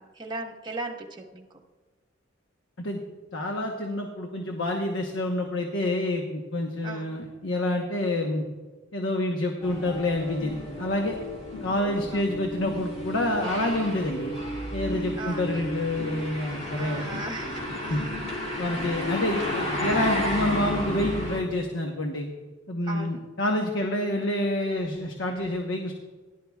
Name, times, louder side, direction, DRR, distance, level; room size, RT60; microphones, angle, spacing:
voice 1, 0.0-1.4 6.8-7.1 11.7-12.3 15.2-15.6 16.8-18.1 22.8-23.2, right 2 dB, 25° right, -1 dB, 1.3 m, -38 dB
voice 2, 3.3-8.4 8.9-11.2 11.6-14.3 14.7-17.1 17.9-18.0 18.6-22.3 22.7-25.9, left 1 dB, 80° left, 2 dB, 1.0 m, -28 dB
sound 1, 9.6-21.4, left 1 dB, 35° left, 2.6 m, -32 dB
16.5 x 11.5 x 2.4 m, 1.3 s
head